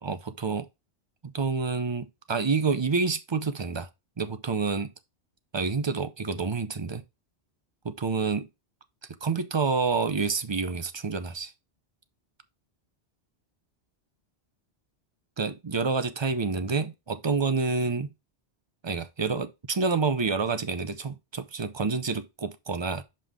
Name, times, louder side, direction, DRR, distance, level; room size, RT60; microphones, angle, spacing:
voice 1, 0.0-0.7 1.2-3.9 4.2-4.9 5.5-7.0 7.8-8.5 9.2-11.5 15.4-18.1 18.8-23.0, right 4 dB, 35° right, 0.5 m, -28 dB
5.5 x 5.3 x 3.6 m
omnidirectional pair, 1.2 m